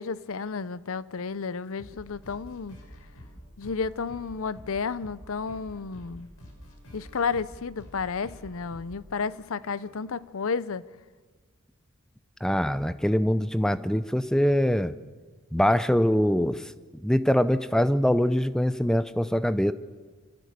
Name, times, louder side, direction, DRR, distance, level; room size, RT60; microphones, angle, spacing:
voice 1, 0.0-2.8 3.6-6.3 6.9-10.8, left 5 dB, 70° left, 0.6 m, -32 dB
sound 1, 1.8-10.2, equal, 85° left, 6.2 m, -48 dB
voice 2, 12.4-14.9 15.5-16.7 17.0-19.7, equal, 5° left, 0.5 m, -23 dB
25.0 x 16.0 x 6.9 m
head